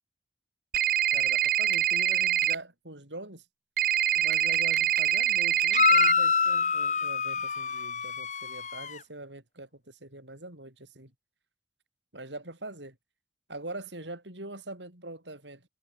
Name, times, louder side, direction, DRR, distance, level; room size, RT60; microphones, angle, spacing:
sound 1, 0.7-2.5 3.8-6.1, right 11 dB, 50° right, 0.5 m, -25 dB
voice 1, 1.1-3.4 4.1-11.1 12.1-13.0 13.5-15.7, right 2 dB, 85° right, 7.3 m, -43 dB
sound 2, 5.7-9.0, left 5 dB, 40° left, 2.5 m, -26 dB
head